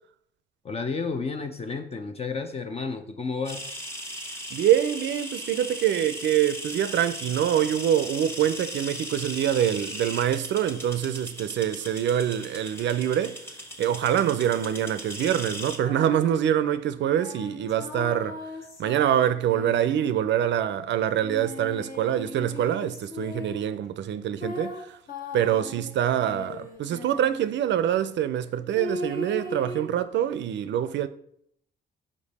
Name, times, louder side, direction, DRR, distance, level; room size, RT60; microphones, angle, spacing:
voice 1, 0.6-3.7, left 4 dB, 30° left, 0.6 m, -31 dB
sound 1, 3.5-15.8, equal, 10° left, 1.2 m, -38 dB
voice 2, 4.5-13.4 13.8-18.4 18.8-25.0 25.3-31.1, right 10 dB, 65° right, 0.4 m, -25 dB
sound 2, 15.8-16.4 17.1-20.4 21.2-23.8 24.4-27.5 28.7-29.9, left 2 dB, 45° left, 1.5 m, -38 dB
5.2 x 5.2 x 4.1 m
cardioid pair, 90°, 20 cm